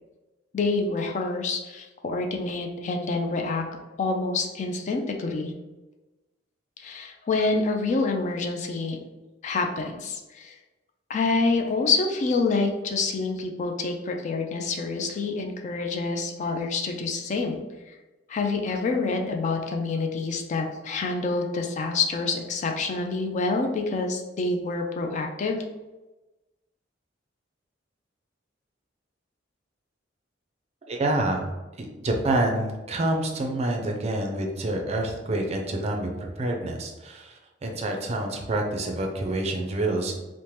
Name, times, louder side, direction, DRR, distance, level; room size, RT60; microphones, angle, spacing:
voice 1, 0.5-3.7 4.0-5.5 6.8-9.0 9.4-10.6 11.1-17.6 17.9-18.0 18.3-25.6, left 3 dB, 40° left, 3 dB, 0.3 m, -27 dB
voice 2, 30.9-31.4 31.8-40.2, right 1 dB, 35° right, 2 dB, 0.4 m, -27 dB
2.8 x 2.1 x 3.1 m, 1.1 s
head